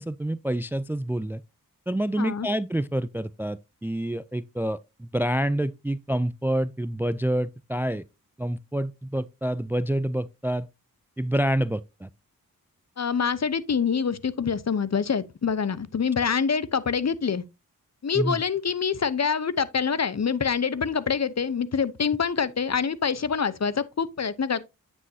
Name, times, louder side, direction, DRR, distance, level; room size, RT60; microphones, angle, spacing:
voice 1, 0.0-1.4 1.9-8.0 8.4-10.7 11.2-12.1 18.1-18.4, right 1 dB, 5° right, 0.4 m, -27 dB
voice 2, 2.2-2.5 13.0-17.4 18.0-24.6, left 6 dB, 45° left, 0.8 m, -26 dB
9.0 x 6.3 x 2.7 m
cardioid pair, 40°, 36 cm